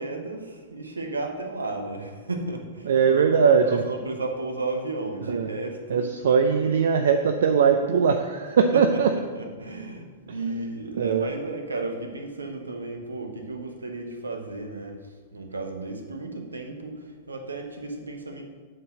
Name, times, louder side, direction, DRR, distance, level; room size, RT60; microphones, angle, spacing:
voice 1, 0.0-3.2 3.8-6.0 8.7-8.8 9.1-15.0 15.3-17.0 17.3-18.4, right 2 dB, 80° right, 4 dB, 1.0 m, -34 dB
voice 2, 2.8-3.8 5.3-5.5 5.9-9.1 10.3-10.4 11.0-11.3, right 6 dB, 65° right, 6 dB, 0.4 m, -20 dB
7.6 x 4.0 x 6.1 m, 1.5 s
figure-of-eight pair, 100°, 0 cm